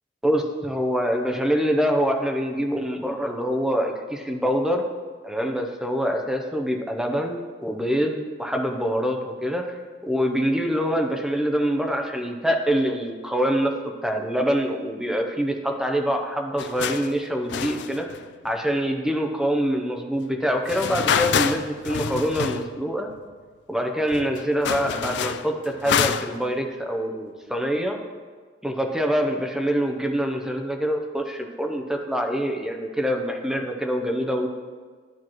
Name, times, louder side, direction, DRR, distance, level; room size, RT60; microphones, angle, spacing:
voice 1, 0.2-4.8 5.2-9.7 10.0-13.7 14.0-18.1 18.4-23.1 23.7-28.0 28.6-34.5, equal, 5° right, 2 dB, 0.6 m, -25 dB
sound 1, 16.6-17.1 17.5-18.5 20.7-22.8 23.1-23.2 23.8-23.9 24.1-26.5, left 7 dB, 65° left, 0.3 m, -27 dB
13.0 x 4.6 x 3.0 m, 1.5 s
head